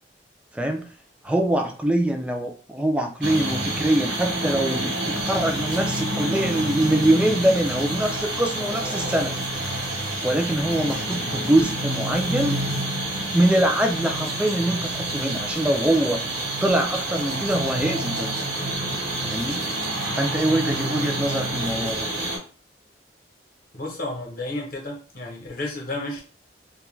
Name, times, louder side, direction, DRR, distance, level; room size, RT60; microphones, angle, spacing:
voice 1, 1.2-9.3 10.2-12.6 13.3-16.2 16.6-18.3 19.2-19.7 20.2-22.1, right 1 dB, 5° right, 3 dB, 0.3 m, -23 dB
sound 1, 3.2-22.4, right 1 dB, 70° right, 1.0 m, -28 dB
voice 2, 23.7-26.2, left 2 dB, 50° left, 0 dB, 0.8 m, -32 dB
2.2 x 2.2 x 3.1 m, 0.39 s
head